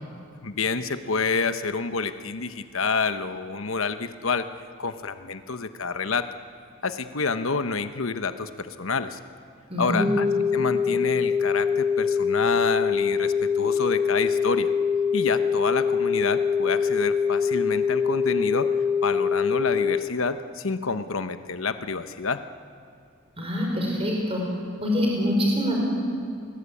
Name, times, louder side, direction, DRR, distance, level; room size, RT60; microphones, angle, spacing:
voice 1, 0.4-4.5 4.8-6.3 6.8-9.2 9.8-10.3 10.5-14.7 15.1-18.7 19.0-22.4, left 4 dB, 70° left, 10 dB, 1.0 m, -28 dB
voice 2, 9.7-10.1 23.4-24.4 24.8-25.8, left 1 dB, 30° right, -1 dB, 4.9 m, -24 dB
sound 1, 10.0-20.0, left 6 dB, 5° right, 1.8 m, -24 dB
29.0 x 21.0 x 8.5 m, 2.3 s
head